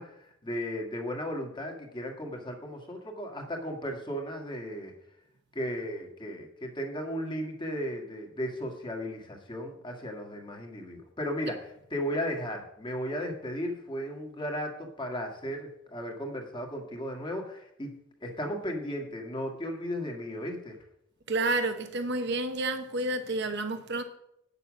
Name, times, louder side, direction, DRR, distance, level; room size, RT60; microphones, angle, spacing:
voice 1, 0.0-4.9 5.5-11.6 11.9-20.8, equal, 25° left, 1.7 m, -35 dB
voice 2, 21.3-24.0, right 2 dB, 60° right, 1.0 m, -30 dB
9.0 x 6.9 x 6.2 m
head